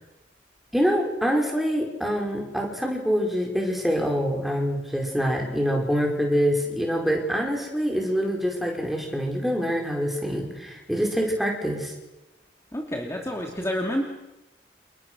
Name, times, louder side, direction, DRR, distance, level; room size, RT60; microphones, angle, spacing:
voice 1, 0.7-11.9, equal, ahead, 0 dB, 5.2 m, -25 dB
voice 2, 12.7-14.0, equal, 15° left, 0 dB, 2.8 m, -28 dB
29.5 x 29.5 x 6.4 m, 1.0 s
head